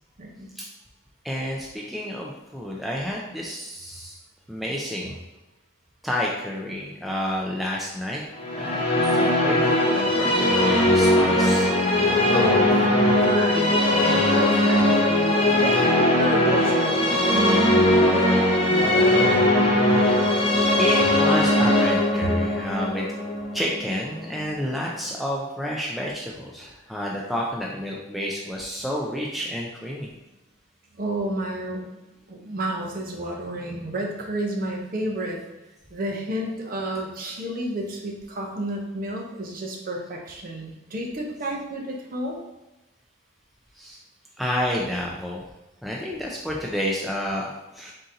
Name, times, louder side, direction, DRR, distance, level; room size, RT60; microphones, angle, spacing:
voice 1, 0.2-0.5 12.3-18.3 18.7-19.4 31.0-31.8 32.3-35.4 35.9-42.4, right 1 dB, 45° right, 0 dB, 0.7 m, -30 dB
voice 2, 1.2-4.2 4.5-5.2 6.0-8.2 8.5-11.7 20.8-23.1 23.5-30.1 43.8-44.0 44.4-45.4 45.8-47.9, equal, ahead, -2 dB, 0.3 m, -30 dB
sound 1, 8.4-24.4, left 1 dB, 30° left, 0.7 m, -20 dB
3.8 x 2.7 x 3.8 m, 1.0 s
head